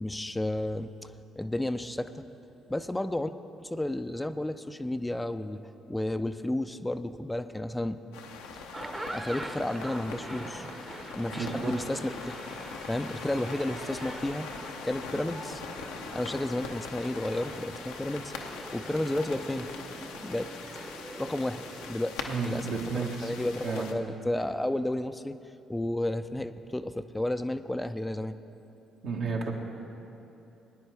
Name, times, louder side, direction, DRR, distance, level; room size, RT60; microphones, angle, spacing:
voice 1, 0.0-2.3 2.7-3.3 3.6-5.6 5.9-8.0 9.1-10.7 11.2-12.3 12.9-14.5 14.8-15.6 16.1-18.3 18.7-19.7 20.2-20.5 20.8-21.6 21.9-22.1 22.4-25.4 25.7-28.3, left 1 dB, 10° left, 10 dB, 0.5 m, -32 dB
sound 1, 8.1-23.9, left 5 dB, 80° left, 0.8 m, -42 dB
sound 2, 8.6-21.9, right 1 dB, 20° right, 0.9 m, -43 dB
voice 2, 10.9-11.8 22.3-23.3 23.6-23.9 29.0-29.5, right 4 dB, 65° right, -1 dB, 1.5 m, -33 dB
19.0 x 9.9 x 3.4 m, 2.9 s
hypercardioid pair, 50°, 0 cm